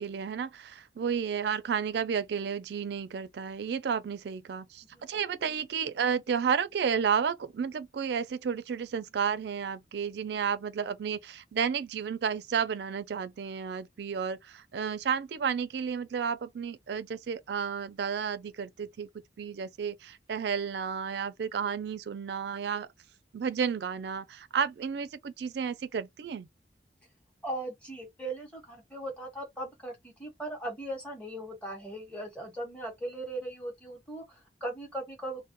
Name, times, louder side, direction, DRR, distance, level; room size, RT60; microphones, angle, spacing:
voice 1, 0.0-19.1 19.4-22.9 23.3-26.5, right 7 dB, 70° right, 0.3 m, -32 dB
voice 2, 27.4-35.4, right 1 dB, 5° left, 0.9 m, -38 dB
2.1 x 2.1 x 2.8 m
head